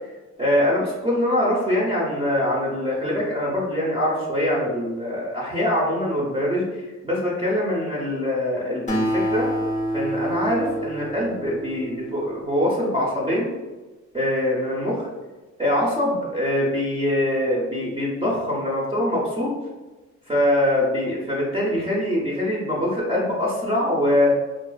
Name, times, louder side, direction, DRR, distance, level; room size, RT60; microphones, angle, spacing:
voice 1, 0.4-6.6 7.0-9.5 9.9-13.5 14.1-15.1 15.6-19.5 20.3-24.3, left 1 dB, 20° right, -7 dB, 0.6 m, -23 dB
Acoustic guitar, 8.9-12.6, right 1 dB, 25° left, 0.5 m, -27 dB
2.4 x 2.3 x 2.2 m, 1.2 s
cardioid pair, 90°, 30 cm